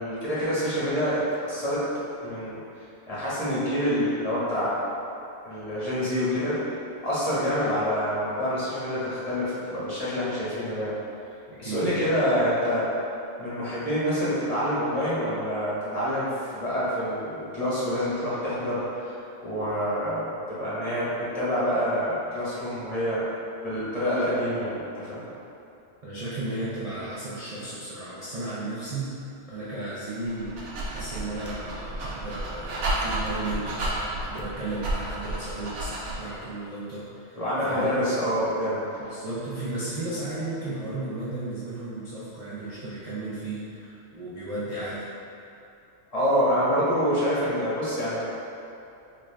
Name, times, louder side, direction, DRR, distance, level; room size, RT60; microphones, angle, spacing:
voice 1, 0.0-2.6 3.1-4.8 5.4-6.6 7.0-11.0 11.6-12.9 13.4-16.3 16.5-19.2 19.4-23.2 23.6-25.2 37.4-38.8 46.1-48.3, equal, 35° left, -10 dB, 0.9 m, -27 dB
voice 2, 11.5-12.1 26.0-29.1 29.5-37.4 37.7-37.9 39.1-45.1, right 2 dB, 45° right, -10 dB, 0.5 m, -34 dB
Dog, 30.2-36.3, right 1 dB, 80° right, 1.0 m, -32 dB
3.8 x 2.3 x 3.2 m, 2.7 s
omnidirectional pair, 1.2 m